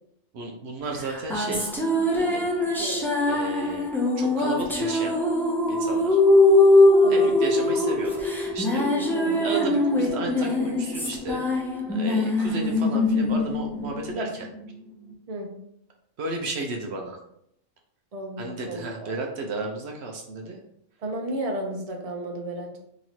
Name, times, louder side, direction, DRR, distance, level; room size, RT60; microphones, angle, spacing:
voice 1, 0.3-1.7 2.2-2.5 3.3-3.9 4.2-5.2 5.7-6.2 7.1-8.9 9.4-11.4 11.9-14.5 16.2-17.2 18.4-20.6, right 2 dB, 65° right, 1 dB, 0.8 m, -33 dB
sound 1, 1.0-14.7, left 2 dB, 5° left, 0.4 m, -22 dB
voice 2, 18.1-19.1 21.0-22.8, right 1 dB, 35° right, 0 dB, 0.7 m, -33 dB
3.0 x 3.0 x 4.0 m, 0.74 s
omnidirectional pair, 1.2 m